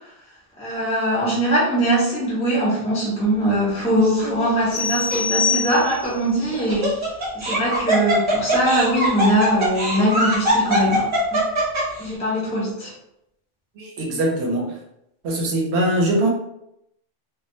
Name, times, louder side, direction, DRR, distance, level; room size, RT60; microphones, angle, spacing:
voice 1, 0.6-6.9 7.3-11.0 12.0-12.9, right 1 dB, 5° left, -7 dB, 0.7 m, -21 dB
Laughter, 4.0-4.5 5.1-5.2 6.4-12.0, right 1 dB, 30° right, 1.0 m, -22 dB
sound 1, 4.7-6.2, left 5 dB, 50° left, 1.1 m, -24 dB
voice 2, 13.8-14.8 15.2-16.3, right 1 dB, 85° right, -1 dB, 0.9 m, -22 dB
2.3 x 2.0 x 2.6 m, 0.79 s
omnidirectional pair, 1.1 m